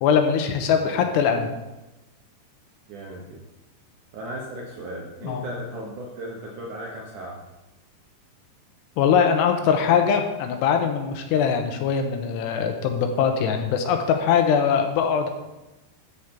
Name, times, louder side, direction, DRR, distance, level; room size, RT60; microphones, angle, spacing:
voice 1, 0.0-1.5 5.2-5.5 9.0-15.3, left 7 dB, 85° left, 5 dB, 3.0 m, -22 dB
voice 2, 0.7-1.0 2.9-3.4 4.1-7.4, right 1 dB, 70° right, -2 dB, 1.9 m, -36 dB
13.0 x 5.1 x 4.3 m, 1.0 s
omnidirectional pair, 4.9 m